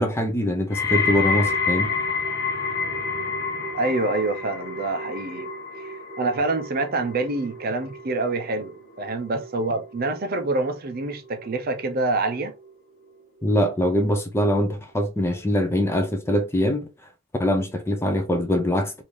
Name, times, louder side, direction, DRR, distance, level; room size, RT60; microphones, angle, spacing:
voice 1, 0.0-2.0 13.4-16.9 17.4-19.0, equal, 10° left, 0.4 m, -23 dB
sound 1, 0.7-11.8 12.2-12.7 13.4-13.5, left 4 dB, 50° left, 0.9 m, -29 dB
voice 2, 3.7-5.5 5.8-12.5, right 2 dB, 40° right, 0.5 m, -26 dB
3.1 x 2.6 x 3.5 m
head